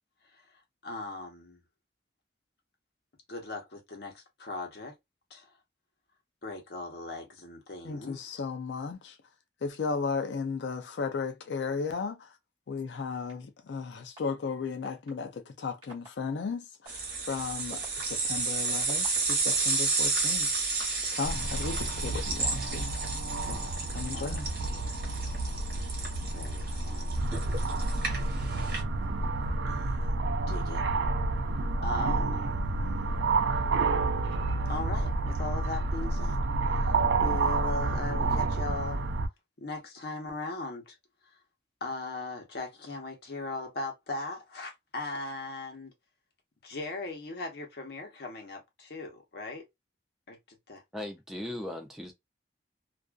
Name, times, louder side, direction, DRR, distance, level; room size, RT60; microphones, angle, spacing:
voice 1, 0.3-1.6 3.3-4.9 5.3-5.5 6.4-8.4 24.1-24.3 26.3-27.2 29.7-30.0 30.5-30.8 31.8-32.5 34.7-36.4 36.7-39.0 39.6-41.0 41.2-41.4 41.8-45.9 46.6-49.6 50.3-50.8, left 3 dB, 60° left, 0.9 m, -39 dB
voice 2, 7.8-9.2 9.6-12.3 12.7-20.5 21.1-22.9 23.5-24.5, left 5 dB, 80° left, 0.4 m, -35 dB
sound 1, 13.3-13.4 14.2-14.3 14.8-15.1 15.8-16.1 16.8-16.9 17.6-19.6 20.3-21.1, right 1 dB, 30° right, 1.0 m, -48 dB
sound 2, 16.9-28.8, right 3 dB, 55° right, 1.0 m, -32 dB
sound 3, 21.2-39.3, right 3 dB, 80° right, 0.4 m, -30 dB
voice 3, 50.9-52.1, left 1 dB, ahead, 0.4 m, -38 dB
2.4 x 2.3 x 2.3 m
head